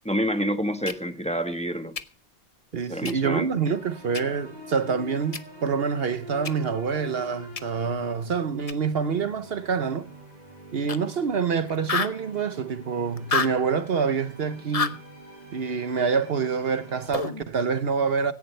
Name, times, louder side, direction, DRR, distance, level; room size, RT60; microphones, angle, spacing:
voice 1, 0.0-2.0 2.7-3.6, equal, 5° left, 1.3 m, -28 dB
sound 1, 0.9-1.0 2.0-2.1 3.1-3.2 4.1-4.2 5.3-5.4 6.4-6.5 7.6-7.7 8.7-8.8 10.9-11.0 11.3-11.4 11.7-12.2 13.2-13.6 14.7-15.0 17.1-17.4, left 5 dB, 35° left, 0.8 m, -27 dB
voice 2, 2.7-10.1 10.7-15.0 15.5-18.3, right 6 dB, 60° right, 1.0 m, -26 dB
sound 2, 3.6-17.1, equal, 40° right, 5.8 m, -45 dB
17.5 x 15.5 x 3.3 m
omnidirectional pair, 1.1 m